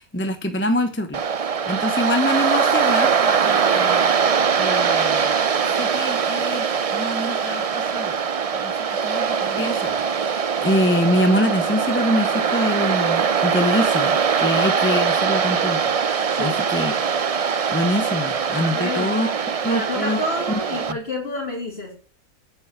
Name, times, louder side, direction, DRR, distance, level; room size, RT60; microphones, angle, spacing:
voice 1, 0.0-4.1 4.6-5.3 5.7-6.7 6.9-8.2 8.5-8.7 9.0-16.9 17.4-19.3 19.6-20.2 20.9-21.0, left 1 dB, 10° left, 7 dB, 0.9 m, -25 dB
Waves surf, 1.1-20.9, right 6 dB, 65° right, 0.3 m, -22 dB
voice 2, 16.3-16.6 18.7-19.2 19.6-22.0, left 1 dB, 40° left, -4 dB, 3.6 m, -29 dB
8.8 x 8.3 x 8.2 m, 0.41 s
omnidirectional pair, 1.5 m